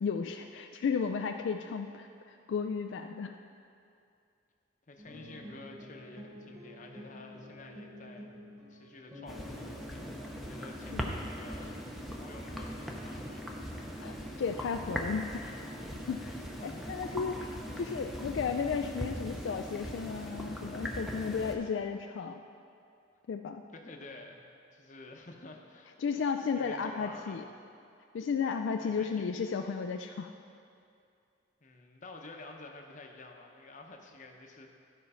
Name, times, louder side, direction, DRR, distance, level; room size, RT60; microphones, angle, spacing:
voice 1, 0.0-3.4 10.9-11.1 14.0-15.6 16.1-22.4 23.3-23.6 26.0-27.4 28.1-30.3, left 5 dB, 70° left, 5 dB, 0.3 m, -34 dB
voice 2, 4.9-8.3 8.7-11.8 12.1-14.0 16.6-17.0 17.8-17.9 23.7-24.4 24.7-25.9 26.6-27.4 28.8-29.3 31.6-34.7, left 2 dB, 40° left, 2 dB, 0.8 m, -50 dB
sound 1, 5.0-10.4, left 1 dB, 20° right, 1.4 m, -49 dB
sound 2, 9.3-21.5, equal, ahead, 0.6 m, -40 dB
12.5 x 4.5 x 5.6 m, 2.5 s
head